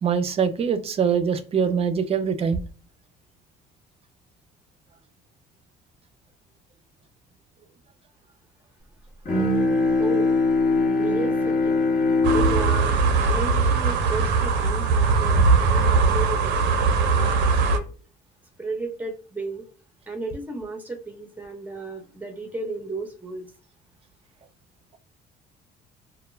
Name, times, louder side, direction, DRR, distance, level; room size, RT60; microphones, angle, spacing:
voice 1, 0.0-2.6, right 6 dB, 35° right, 10 dB, 0.4 m, -23 dB
Bowed string instrument, 9.2-14.7, left 3 dB, 50° left, 1.0 m, -23 dB
voice 2, 10.0-10.3 11.0-11.9 12.3-16.6 17.1-17.9 18.6-19.6 20.1-23.5, right 3 dB, 10° right, 3 dB, 0.8 m, -33 dB
sound 1, 12.2-17.8, right 4 dB, 90° right, 0.5 m, -20 dB
2.2 x 2.1 x 3.1 m, 0.38 s
cardioid pair, 110°, 17 cm